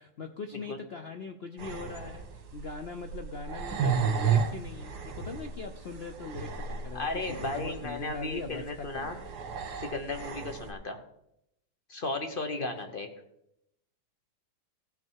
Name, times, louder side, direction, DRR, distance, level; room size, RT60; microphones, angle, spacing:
voice 1, 0.0-9.1 12.6-12.9, left 4 dB, 70° left, 6 dB, 0.6 m, -41 dB
sound 1, 1.6-10.7, right 6 dB, 60° right, 1.9 m, -34 dB
voice 2, 6.9-9.2 9.8-11.0 11.9-13.1, left 2 dB, 40° left, 6 dB, 0.9 m, -35 dB
16.0 x 6.0 x 4.6 m, 0.80 s
omnidirectional pair, 2.0 m